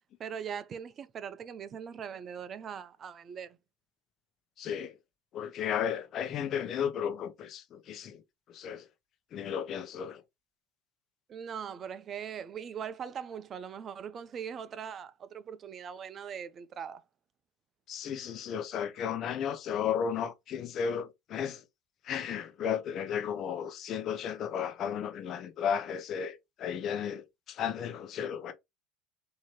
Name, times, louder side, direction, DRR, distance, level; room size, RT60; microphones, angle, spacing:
voice 1, 0.2-3.6 11.3-17.0, right 7 dB, 40° right, 0.6 m, -41 dB
voice 2, 4.6-4.9 5.3-8.2 8.5-8.8 9.3-10.2 17.9-21.6 22.1-28.5, left 8 dB, 50° left, 0.8 m, -34 dB
4.5 x 2.8 x 3.0 m
supercardioid pair, 85°, 0 cm